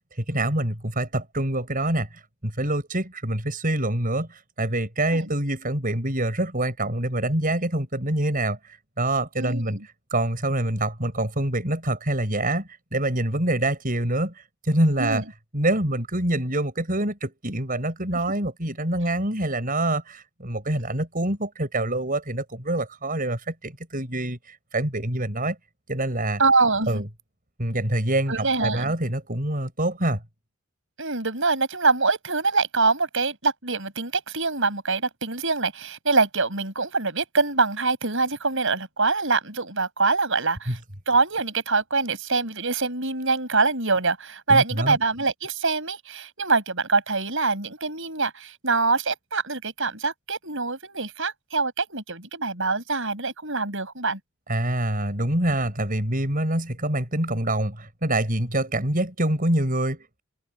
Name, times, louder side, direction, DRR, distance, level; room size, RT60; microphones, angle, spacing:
voice 1, 0.3-9.8 10.1-15.2 15.5-25.6 25.9-26.4 26.9-27.1 27.6-30.2 40.7-40.8 44.5-45.0 54.5-60.2, right 1 dB, 40° right, 7.3 m, -26 dB
voice 2, 9.4-9.8 15.0-15.2 26.4-27.0 28.3-28.9 31.0-40.8 41.1-54.2, right 3 dB, 60° right, 7.8 m, -24 dB
head